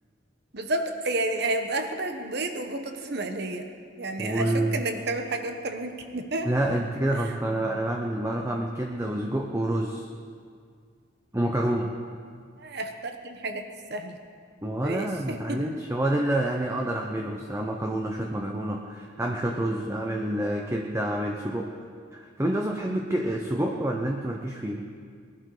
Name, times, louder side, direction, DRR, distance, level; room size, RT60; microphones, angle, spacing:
voice 1, 0.5-3.7 4.0-6.5 12.6-14.2 14.8-15.6, right 2 dB, 55° right, 6 dB, 1.2 m, -31 dB
voice 2, 4.2-4.8 6.4-10.1 11.3-11.9 14.6-21.7 22.1-24.9, right 1 dB, 15° right, 1 dB, 0.8 m, -28 dB
20.5 x 11.5 x 5.0 m, 2.1 s
head